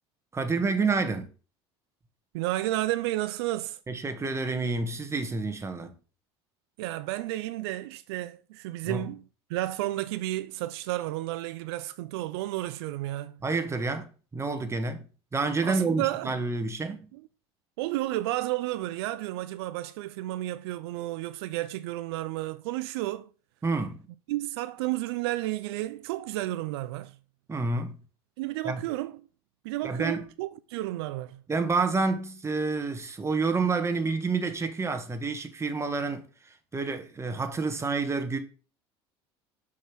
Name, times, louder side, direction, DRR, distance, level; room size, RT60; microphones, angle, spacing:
voice 1, 0.3-1.3 3.9-5.9 8.9-9.1 13.4-15.1 15.3-17.1 23.6-24.0 27.5-28.0 28.6-28.9 29.8-30.3 31.5-36.3 36.7-38.4, right 4 dB, 20° right, 1.8 m, -29 dB
voice 2, 2.3-3.8 6.8-9.2 9.5-13.4 15.6-16.4 17.1-17.2 17.8-23.3 24.3-27.2 28.4-29.2 29.6-31.4, right 16 dB, 80° right, 0.5 m, -32 dB
6.4 x 5.6 x 6.2 m
hypercardioid pair, 80°, 13 cm